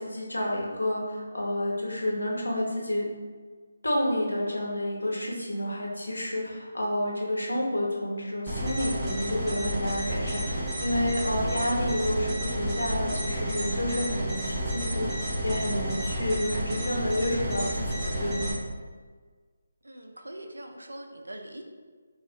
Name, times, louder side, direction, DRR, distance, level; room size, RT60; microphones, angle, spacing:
voice 1, 0.0-3.1 3.8-18.5, left 1 dB, 75° left, -2 dB, 0.9 m, -30 dB
sound 1, 8.5-18.5, right 1 dB, 10° right, 0.9 m, -31 dB
voice 2, 19.8-21.6, right 1 dB, 75° right, 3 dB, 0.5 m, -42 dB
4.0 x 2.4 x 2.8 m, 1.5 s
figure-of-eight pair, 150°, 0 cm